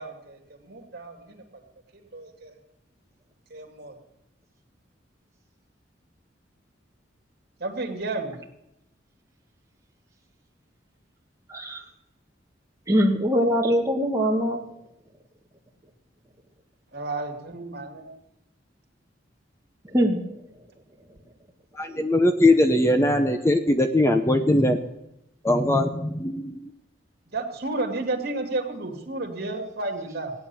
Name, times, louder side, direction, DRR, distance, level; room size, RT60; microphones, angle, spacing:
voice 1, 0.0-1.4 2.1-2.5 3.5-4.0 7.6-8.4 16.9-18.1 27.3-30.3, right 2 dB, 55° right, 3 dB, 2.5 m, -32 dB
voice 2, 12.9-14.6 19.9-20.2, equal, 15° right, 0 dB, 1.6 m, -22 dB
voice 3, 21.8-24.8 25.4-26.6, left 1 dB, 15° left, 7 dB, 0.7 m, -20 dB
16.5 x 9.4 x 7.0 m, 0.86 s
head